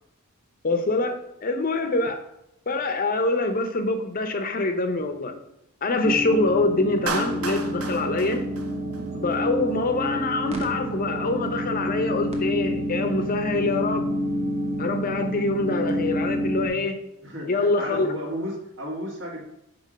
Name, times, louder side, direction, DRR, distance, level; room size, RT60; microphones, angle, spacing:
voice 1, 0.6-2.3 2.7-5.3 5.8-8.4 9.1-14.1 14.8-17.0 17.5-18.1, left 2 dB, 40° left, 7 dB, 0.7 m, -25 dB
sound 1, 6.0-16.7, equal, 30° right, 1.0 m, -29 dB
Clapping, 7.1-9.4, right 4 dB, 90° right, 0.8 m, -33 dB
voice 2, 17.2-19.4, equal, 60° right, -1 dB, 1.9 m, -33 dB
5.3 x 4.6 x 5.2 m, 0.82 s
head